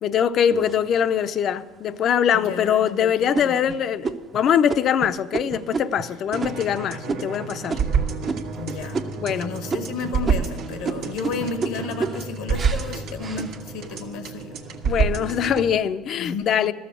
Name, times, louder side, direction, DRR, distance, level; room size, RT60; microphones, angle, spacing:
voice 1, 0.0-7.8 9.2-9.5 14.8-16.7, left 8 dB, 50° left, 0.5 m, -22 dB
sound 1, 0.5-1.4 2.0-2.1 2.5-2.9 3.3-8.7 8.9-9.4 9.7-14.0 14.5-15.0, right 4 dB, 35° right, 0.7 m, -32 dB
voice 2, 2.3-3.5 8.5-9.0 9.3-14.5 16.2-16.5, left 4 dB, 90° left, 1.2 m, -32 dB
sound 2, 6.3-15.7, right 5 dB, 75° right, 1.4 m, -28 dB
13.5 x 7.1 x 8.3 m
supercardioid pair, 100°, 0 cm